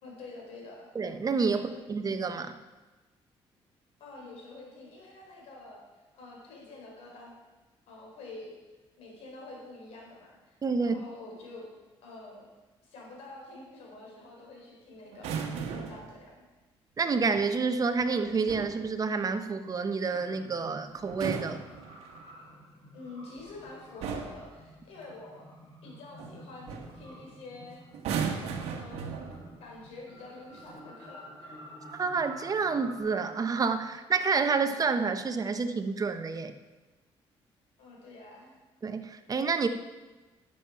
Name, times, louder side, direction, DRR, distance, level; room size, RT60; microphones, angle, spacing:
voice 1, 0.0-0.9 1.5-1.8 4.0-5.8 6.1-7.3 7.9-8.6 9.0-11.7 12.0-12.5 12.8-16.4 22.9-25.5 25.8-27.8 28.5-29.2 29.6-31.6 37.8-38.6, left 2 dB, 85° left, -2 dB, 4.1 m, -47 dB
voice 2, 0.9-2.6 10.6-10.9 17.0-21.6 32.0-36.5 38.8-39.7, right 4 dB, 35° right, 9 dB, 0.9 m, -29 dB
sound 1, 15.1-16.1 18.2-18.8 21.0-22.3 23.4-23.6 24.0-24.5 26.2-26.4 26.7-27.0 27.9-29.6 30.5-30.8, right 6 dB, 90° right, 1.2 m, -36 dB
sound 2, 20.0-33.0, right 1 dB, 40° left, 3.9 m, -50 dB
11.0 x 7.8 x 5.8 m, 1.2 s
cardioid pair, 90°, 10 cm